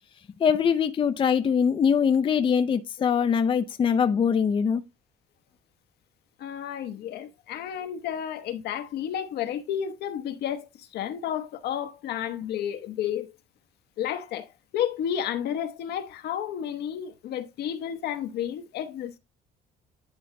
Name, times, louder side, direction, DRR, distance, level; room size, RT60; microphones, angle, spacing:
voice 1, 0.4-4.8, left 7 dB, 30° left, 0.5 m, -22 dB
voice 2, 6.4-13.3 14.0-14.5 14.7-19.2, left 9 dB, 75° left, 1.0 m, -31 dB
10.0 x 3.9 x 3.2 m
cardioid pair, 110°, 17 cm